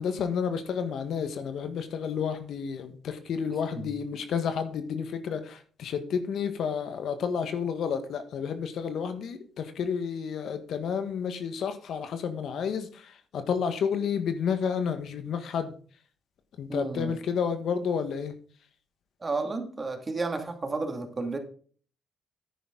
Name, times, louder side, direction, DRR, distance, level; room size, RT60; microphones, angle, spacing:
voice 1, 0.0-15.7 16.6-18.3, left 6 dB, 70° left, 9 dB, 1.5 m, -31 dB
voice 2, 16.7-17.2 19.2-21.4, right 3 dB, 30° right, 6 dB, 2.4 m, -32 dB
10.0 x 9.6 x 3.9 m, 0.43 s
cardioid pair, 90°, 0 cm